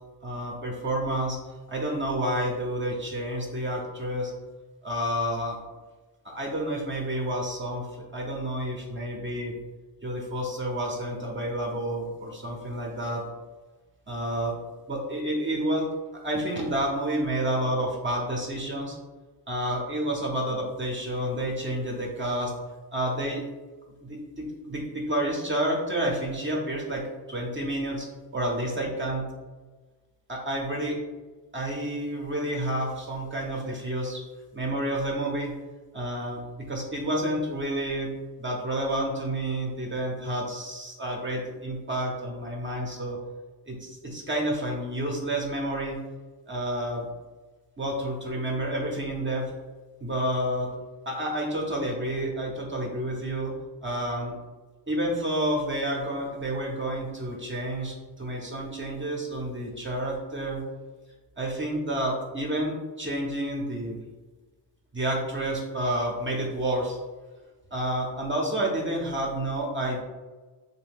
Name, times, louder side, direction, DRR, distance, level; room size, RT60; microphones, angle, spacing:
voice 1, 0.2-1.4 1.7-4.3 4.8-5.6 6.2-9.5 10.0-13.2 14.1-14.6 14.9-15.9 16.2-19.0 19.5-22.5 22.9-23.4 24.0-29.3 30.3-31.0 31.5-34.2 34.5-35.6 35.9-43.2 43.7-46.0 46.5-47.1 47.8-49.5 50.0-50.7 51.1-53.5 53.8-54.3 54.9-60.7 61.4-64.0 64.9-67.0 67.7-70.0, right 1 dB, 30° right, -1 dB, 0.6 m, -29 dB
2.7 x 2.1 x 3.5 m, 1.3 s
cardioid pair, 70°, 41 cm